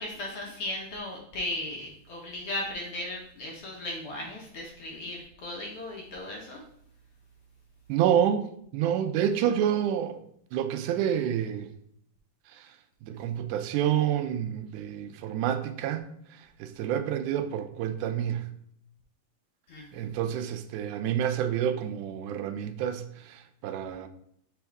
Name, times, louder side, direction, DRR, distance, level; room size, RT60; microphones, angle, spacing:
voice 1, 0.0-6.6 19.7-20.1, left 1 dB, 60° left, 1.6 m, -36 dB
voice 2, 7.9-10.2 10.5-11.7 12.5-18.5 19.9-24.1, right 9 dB, 90° right, 2.1 m, -29 dB
6.1 x 3.5 x 4.5 m
omnidirectional pair, 3.4 m